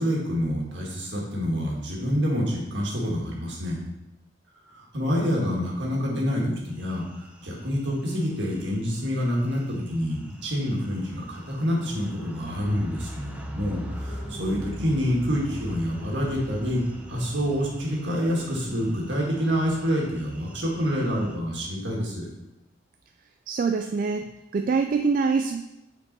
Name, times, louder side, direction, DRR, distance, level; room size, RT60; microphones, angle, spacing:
voice 1, 0.0-3.8 4.7-16.8 17.1-22.3, equal, 65° right, -3 dB, 1.8 m, -27 dB
sound 1, 6.8-21.4, equal, 5° right, 0.7 m, -41 dB
voice 2, 23.5-25.6, right 4 dB, 45° right, 6 dB, 0.3 m, -25 dB
7.8 x 4.5 x 4.1 m, 0.95 s
head